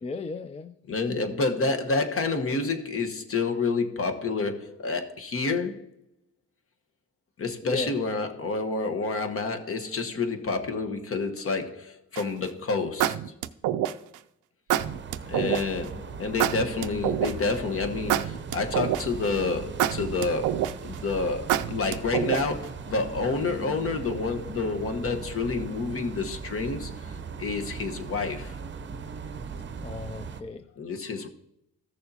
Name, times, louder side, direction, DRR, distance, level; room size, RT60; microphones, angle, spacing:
voice 1, 0.0-0.7 1.4-1.5 7.6-8.0 15.3-15.6 29.8-30.6, left 4 dB, 20° left, 10 dB, 0.4 m, -35 dB
voice 2, 0.9-5.8 7.4-13.2 15.3-28.6 30.8-31.3, left 3 dB, 45° left, 6 dB, 1.2 m, -29 dB
sound 1, 12.2-12.5 13.0-14.2 14.7-15.6 16.4-17.6 18.1-19.2 19.8-20.9 21.5-22.6, right 12 dB, 80° right, 0.5 m, -26 dB
sound 2, 14.8-30.4, right 5 dB, 40° right, 0.7 m, -39 dB
14.5 x 6.6 x 2.8 m, 0.78 s
cardioid pair, 90°, 30 cm